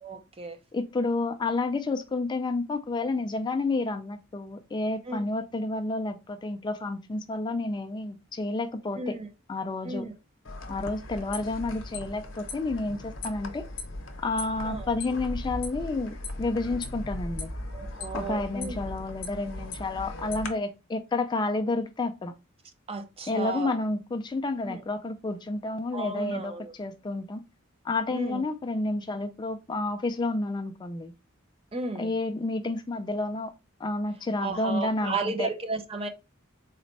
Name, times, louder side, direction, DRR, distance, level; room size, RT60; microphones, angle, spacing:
voice 1, 0.0-0.6 5.1-5.3 9.0-9.3 9.8-10.1 14.6-14.9 17.7-18.8 22.9-23.7 24.7-24.8 25.9-26.7 28.1-28.4 31.7-32.1 34.4-36.1, right 3 dB, 30° right, 0.5 m, -34 dB
voice 2, 0.7-9.2 9.5-10.1 10.7-13.6 14.2-17.5 18.1-22.3 23.3-27.4 27.8-31.1 32.0-33.5 33.8-35.5, left 2 dB, 20° left, 0.3 m, -30 dB
sound 1, 10.4-20.5, left 2 dB, 70° left, 0.8 m, -38 dB
4.0 x 2.2 x 3.9 m
head